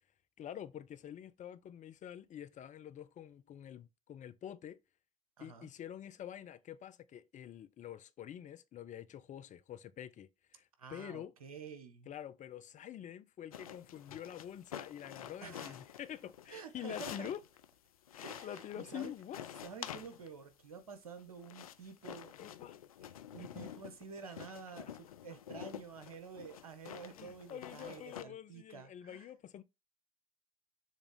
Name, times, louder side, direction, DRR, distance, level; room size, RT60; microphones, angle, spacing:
voice 1, 0.4-4.8 5.4-11.3 12.1-17.4 18.1-19.4 22.4-22.8 23.4-23.5 27.2-29.6, left 10 dB, 45° left, 0.8 m, -47 dB
voice 2, 5.4-5.7 10.8-12.1 15.4-15.8 16.5-17.3 18.2-19.1 19.6-22.3 23.0-29.3, right 5 dB, 85° right, 1.1 m, -50 dB
sound 1, 13.5-17.7 18.1-20.4 21.1-28.2, left 10 dB, 85° left, 0.4 m, -49 dB
7.3 x 3.4 x 3.9 m
figure-of-eight pair, 60°, 18 cm